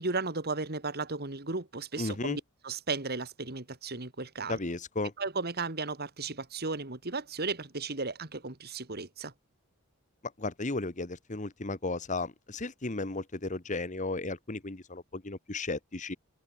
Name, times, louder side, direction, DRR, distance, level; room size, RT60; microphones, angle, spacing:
voice 1, 0.0-4.6 5.2-9.3, right 3 dB, 45° right, 2.1 m, -35 dB
voice 2, 2.0-2.4 4.5-5.1 10.4-16.2, left 2 dB, 35° left, 1.2 m, -34 dB
head